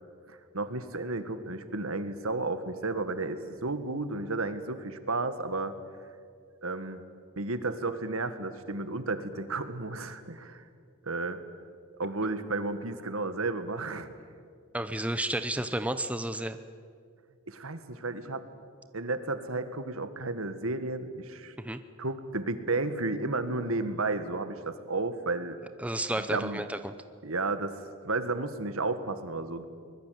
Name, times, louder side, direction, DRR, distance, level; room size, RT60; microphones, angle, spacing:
voice 1, 0.3-5.7 6.6-7.0 7.4-10.6 11.0-11.4 12.0-14.1 17.5-18.4 18.9-21.5 22.0-25.6 26.2-26.6 27.2-27.8 28.0-29.7, right 3 dB, 75° right, 10 dB, 1.7 m, -32 dB
voice 2, 14.7-16.6 21.6-21.8 25.8-26.9, right 1 dB, 5° right, 10 dB, 0.7 m, -31 dB
24.0 x 20.5 x 9.4 m, 2.2 s
head